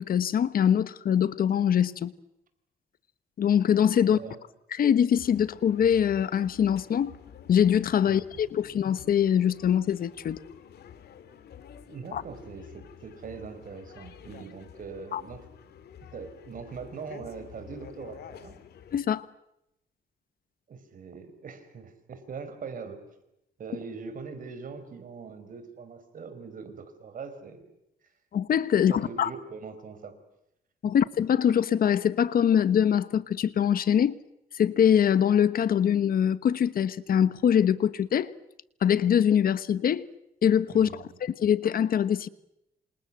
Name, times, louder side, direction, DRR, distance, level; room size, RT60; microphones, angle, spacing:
voice 1, 0.0-2.1 3.4-4.2 4.7-7.1 7.5-10.4 12.1-12.2 15.1-15.2 18.9-19.2 28.3-29.3 30.8-34.2 34.6-38.3 38.8-40.1 40.4-42.3, left 9 dB, 65° left, 1.2 m, -23 dB
voice 2, 4.1-4.4 8.1-8.4 11.9-15.4 16.1-18.6 20.7-23.0 23.6-27.6 28.7-30.2 30.8-31.0 40.7-41.2, right 5 dB, 55° right, 5.1 m, -42 dB
sound 1, 5.1-19.0, left 8 dB, 80° left, 2.5 m, -49 dB
27.5 x 27.5 x 7.6 m
cardioid pair, 125°, 16 cm